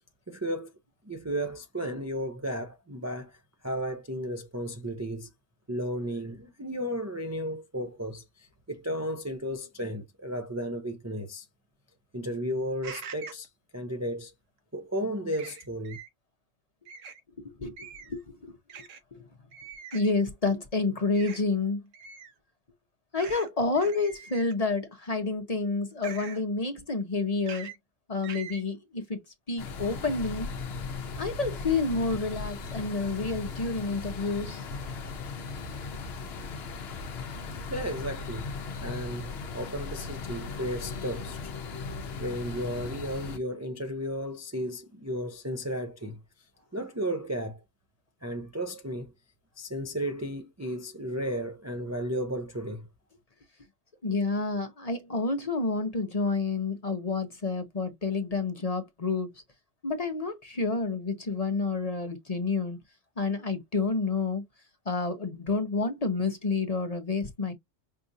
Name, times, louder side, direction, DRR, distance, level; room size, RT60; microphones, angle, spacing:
voice 1, 0.3-0.7 1.0-5.3 5.7-11.5 12.1-13.5 13.7-14.3 14.7-16.0 37.7-41.5 42.2-46.2 46.7-47.6 48.2-49.1 49.6-52.9, equal, 20° right, 0.5 m, -34 dB
sound 1, 12.8-13.5 15.3-16.1 16.9-17.2 17.8-18.2 18.7-19.0 19.5-20.1 21.1-21.4 21.9-22.3 23.2-23.5 23.7-24.6 26.0-26.4 27.5-27.8 28.2-28.6, right 7 dB, 85° right, 1.4 m, -43 dB
voice 2, 17.4-18.5 19.1-19.2 19.9-21.8 23.1-27.7 28.1-30.5 31.1-34.6 54.0-59.3 59.8-62.8 63.2-64.4 64.9-67.5, left 3 dB, 35° left, 0.9 m, -29 dB
sound 2, 29.6-43.4, left 4 dB, 60° left, 1.0 m, -37 dB
5.7 x 2.5 x 2.6 m
omnidirectional pair, 1.3 m